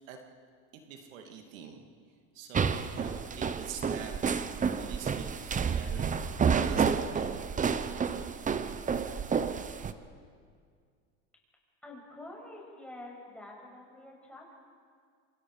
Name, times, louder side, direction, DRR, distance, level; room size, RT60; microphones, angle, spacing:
voice 1, 0.7-1.8 2.3-4.4 4.7-7.4, right 7 dB, 90° right, 3 dB, 2.6 m, -45 dB
sound 1, 2.5-9.9, right 6 dB, 20° right, 0.9 m, -30 dB
voice 2, 11.8-14.5, left 1 dB, 5° left, -2 dB, 6.8 m, -47 dB
27.5 x 27.0 x 5.0 m, 2.1 s
supercardioid pair, 120°, 38 cm